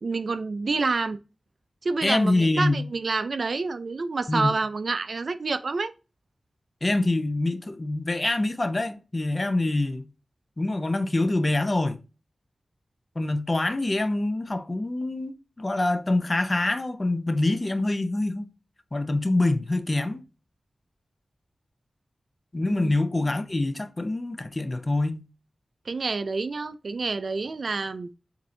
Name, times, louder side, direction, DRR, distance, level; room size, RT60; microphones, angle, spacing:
voice 1, 0.0-1.2 1.8-5.9 22.6-22.9 25.9-28.1, right 3 dB, 65° right, 0.4 m, -28 dB
voice 2, 2.0-2.8 4.3-4.5 6.8-10.1 10.6-12.0 13.2-18.5 18.9-20.2 22.5-25.2, left 2 dB, 35° left, 0.7 m, -25 dB
7.3 x 2.6 x 2.7 m
wide cardioid pair, 65°, 0 cm